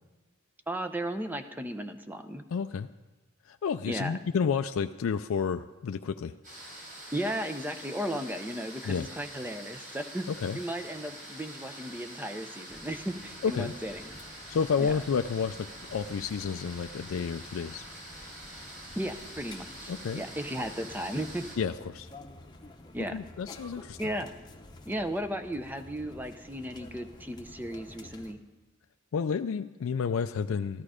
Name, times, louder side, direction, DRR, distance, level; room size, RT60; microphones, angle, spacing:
voice 1, 0.7-2.4 3.9-4.2 7.1-10.3 10.5-14.2 14.8-14.9 19.0-21.5 22.9-23.2 24.0-24.3 24.9-28.4, equal, 10° right, 8 dB, 0.6 m, -35 dB
voice 2, 2.5-2.9 3.4-6.4 8.8-9.1 10.3-10.6 13.4-13.7 14.5-17.8 19.9-20.2 21.6-22.1 23.1-24.0 29.1-30.8, left 6 dB, 75° left, 8 dB, 0.4 m, -30 dB
sound 1, 6.4-21.6, right 1 dB, 40° right, 4.0 m, -46 dB
sound 2, 12.7-28.3, left 2 dB, 20° left, 0.9 m, -50 dB
13.5 x 12.5 x 5.0 m, 1.1 s
head